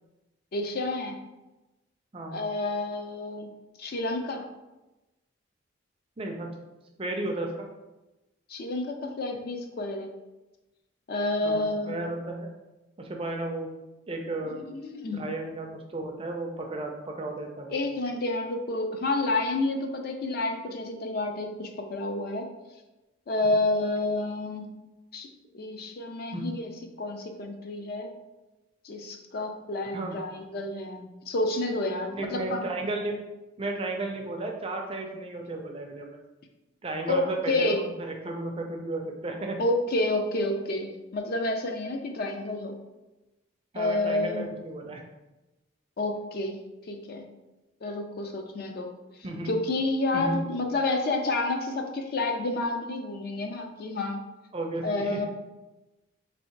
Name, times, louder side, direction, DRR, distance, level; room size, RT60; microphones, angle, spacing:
voice 1, 0.5-1.2 2.3-3.5 3.8-4.4 8.5-10.1 11.1-12.0 14.7-15.2 17.7-22.5 23.3-24.7 25.1-26.7 27.0-28.1 28.8-32.7 37.0-37.8 39.6-42.8 43.8-44.5 46.0-46.6 46.9-47.2 47.8-48.9 49.5-54.2 54.8-55.3, left 2 dB, 45° left, 4 dB, 0.4 m, -29 dB
voice 2, 6.2-6.5 7.0-7.7 11.4-12.5 13.0-13.7 14.1-14.6 15.1-17.9 26.3-26.5 29.9-30.2 32.1-33.2 33.6-36.2 36.8-39.6 43.7-45.0 49.2-49.5 50.1-50.4 54.5-55.2, right 2 dB, 25° right, 2 dB, 0.4 m, -33 dB
3.1 x 2.7 x 4.4 m, 1.0 s
head